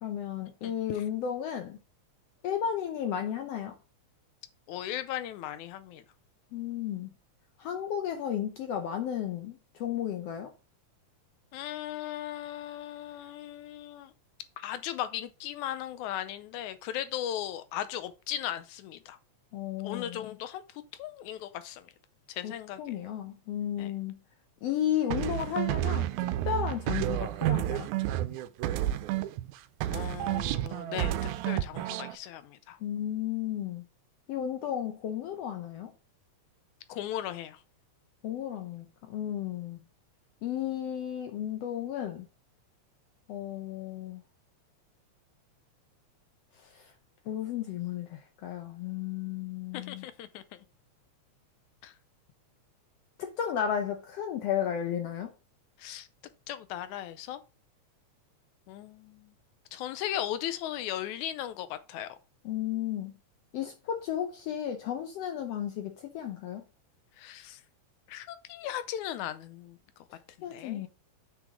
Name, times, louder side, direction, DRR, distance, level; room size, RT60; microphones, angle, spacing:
voice 1, 0.0-1.8 2.4-3.8 6.5-7.1 7.6-10.5 19.5-20.3 22.4-22.5 22.8-24.2 24.6-26.1 26.5-27.9 32.8-33.8 34.3-35.9 38.2-39.8 40.4-42.3 43.3-44.2 46.6-46.9 47.3-50.1 53.2-55.3 62.5-63.1 63.5-66.6 70.1-70.9, left 9 dB, 70° left, 1.6 m, -33 dB
voice 2, 0.6-1.0 4.7-6.0 11.5-14.1 14.6-19.2 19.8-20.6 21.0-21.9 22.3-22.8 23.8-23.9 29.9-31.1 31.4-32.8 36.9-37.6 49.7-50.4 51.8-51.9 55.8-56.1 56.5-57.4 58.7-59.3 59.7-62.2 67.2-67.6 68.1-69.8 70.4-70.9, left 11 dB, 90° left, 2.1 m, -37 dB
sound 1, 25.1-29.5 29.8-32.2, right 13 dB, 90° right, 2.0 m, -30 dB
8.0 x 6.2 x 3.6 m
omnidirectional pair, 3.3 m